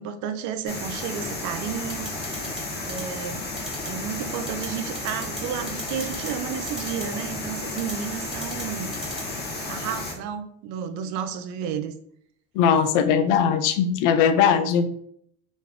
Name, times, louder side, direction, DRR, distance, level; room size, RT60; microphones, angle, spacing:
voice 1, 0.0-2.5 2.8-3.5 3.8-9.0 9.7-11.9, right 8 dB, 55° right, 8 dB, 0.5 m, -32 dB
sound 1, 0.7-10.1, left 2 dB, 25° left, 0.9 m, -33 dB
sound 2, 1.9-2.6 2.9-3.0 3.6-3.9 4.5-4.7 5.0-5.4 5.7-6.3 6.7-7.0 7.8-7.9 8.3-8.6 8.9-9.2, right 1 dB, ahead, 1.2 m, -35 dB
voice 2, 12.6-14.9, left 7 dB, 60° left, 10 dB, 0.5 m, -20 dB
2.5 x 2.3 x 3.4 m, 0.68 s
hypercardioid pair, 85°, 36 cm